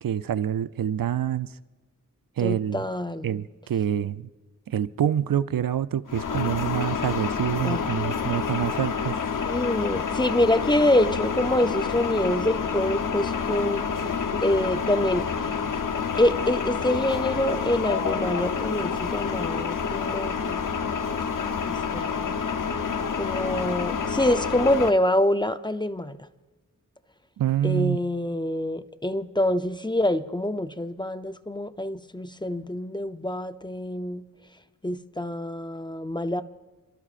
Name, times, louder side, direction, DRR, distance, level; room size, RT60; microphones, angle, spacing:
voice 1, 0.0-1.5 2.4-2.8 3.2-4.3 4.7-9.2 27.4-28.0, right 10 dB, 80° right, 0.5 m, -26 dB
voice 2, 2.4-3.3 7.6-7.8 9.4-13.9 14.4-15.6 16.1-20.7 21.4-22.3 23.2-26.2 27.6-34.3 34.8-36.4, left 1 dB, 15° left, 0.6 m, -26 dB
sound 1, 6.1-24.9, left 6 dB, 65° left, 0.9 m, -28 dB
29.0 x 12.5 x 2.5 m
cardioid pair, 40°, 34 cm